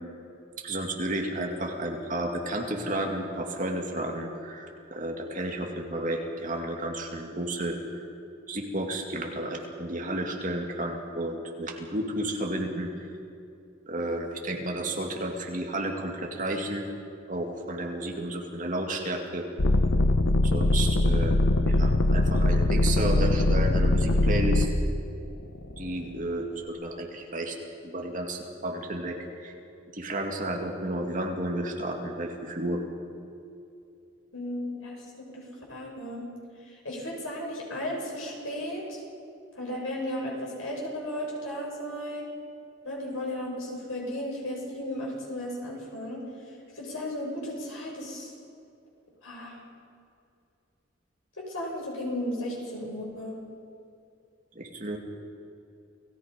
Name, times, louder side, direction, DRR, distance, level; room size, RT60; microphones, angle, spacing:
voice 1, 0.6-8.1 8.5-12.9 13.9-16.8 17.3-19.5 20.4-21.4 21.7-24.7 25.8-27.6 27.8-29.5 29.9-32.8 54.5-55.0, right 1 dB, 40° right, 1 dB, 2.4 m, -32 dB
sound 1, 19.6-24.7 25.4-26.1, left 2 dB, 70° left, 1.0 m, -22 dB
voice 2, 34.3-35.4 35.7-36.3 36.8-39.0 39.6-42.3 42.8-46.2 46.8-48.3 49.2-49.6 51.4-53.4, left 1 dB, 90° left, -2 dB, 7.1 m, -35 dB
29.0 x 18.0 x 5.3 m, 2.6 s
head